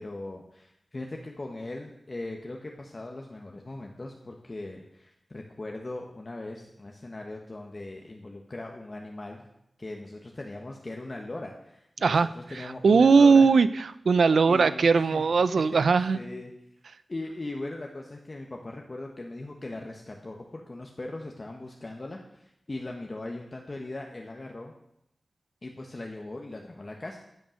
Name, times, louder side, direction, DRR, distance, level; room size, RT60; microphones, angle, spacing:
voice 1, 0.0-9.5 9.8-13.5 14.3-15.3 15.5-15.8 16.1-16.5 17.1-24.7 25.6-27.2, left 2 dB, 35° left, 1 dB, 1.4 m, -39 dB
voice 2, 12.6-16.2, right 5 dB, 85° right, 15 dB, 0.6 m, -20 dB
15.0 x 8.8 x 6.5 m, 0.80 s
wide cardioid pair, 105°, 0 cm